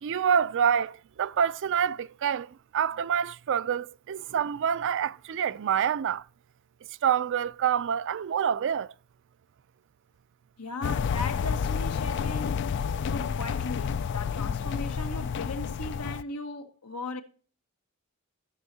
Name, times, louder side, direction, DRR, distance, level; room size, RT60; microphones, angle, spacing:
voice 1, 0.0-6.3 7.0-8.9, right 8 dB, 55° right, 0.4 m, -27 dB
voice 2, 10.6-17.2, left 2 dB, 85° left, 1.3 m, -38 dB
sound 1, 10.8-16.2, left 6 dB, 50° left, 0.3 m, -30 dB
15.5 x 6.3 x 2.8 m
head